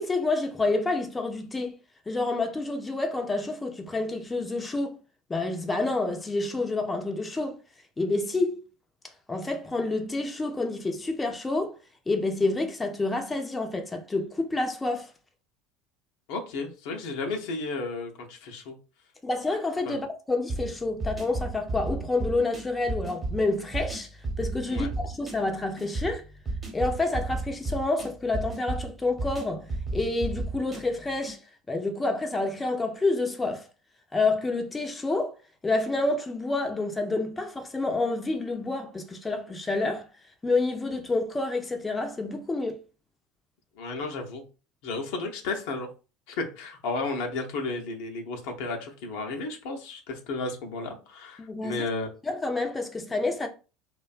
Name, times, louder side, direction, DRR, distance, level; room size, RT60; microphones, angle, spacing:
voice 1, 0.0-1.8 2.1-5.0 5.3-7.6 8.0-8.6 9.3-11.8 12.1-15.1 19.2-24.1 24.4-26.2 26.7-31.4 31.7-33.7 34.1-35.3 35.6-40.1 40.4-42.8 51.4-51.8 52.2-53.5, left 2 dB, 20° left, 0.4 m, -28 dB
voice 2, 16.3-18.7 19.9-20.0 24.7-24.9 43.8-44.4 44.8-45.9 46.3-52.1, left 3 dB, 70° left, 0.5 m, -33 dB
sound 1, 20.5-31.4, right 3 dB, 20° right, 0.9 m, -34 dB
2.5 x 2.2 x 2.3 m
hypercardioid pair, 75°, 0 cm